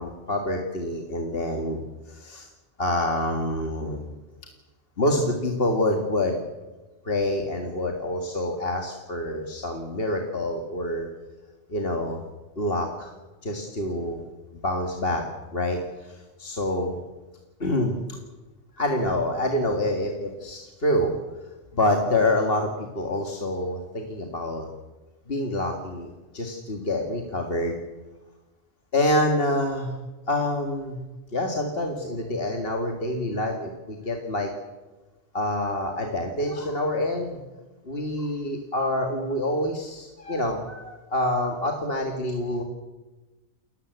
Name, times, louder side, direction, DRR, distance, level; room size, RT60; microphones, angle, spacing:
voice 1, 0.0-1.8 2.1-2.5 2.8-4.0 5.0-6.4 7.0-11.1 11.7-12.2 12.6-13.2 13.4-14.2 14.6-15.2 15.5-17.0 17.6-18.0 18.8-21.1 21.7-24.7 25.3-27.8 28.9-30.0 30.3-31.0 31.3-34.5 35.3-37.4 37.8-42.6, left 1 dB, 45° left, 3 dB, 2.1 m, -27 dB
28.5 x 13.5 x 8.1 m, 1.2 s
omnidirectional pair, 1.4 m